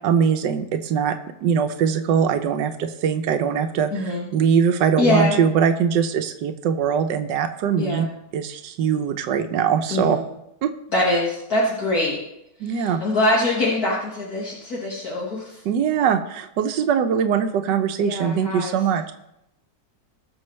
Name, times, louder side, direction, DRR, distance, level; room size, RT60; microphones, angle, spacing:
voice 1, 0.0-1.2 1.4-8.1 8.3-10.2 10.6-10.7 12.6-13.0 15.6-19.1, right 7 dB, 80° right, 7 dB, 1.5 m, -22 dB
voice 2, 3.9-4.3 5.0-5.4 7.8-8.1 9.9-10.2 10.9-12.2 12.7-15.6 18.0-18.7, left 1 dB, 55° left, -5 dB, 2.3 m, -23 dB
21.0 x 7.0 x 3.2 m, 0.83 s
omnidirectional pair, 1.9 m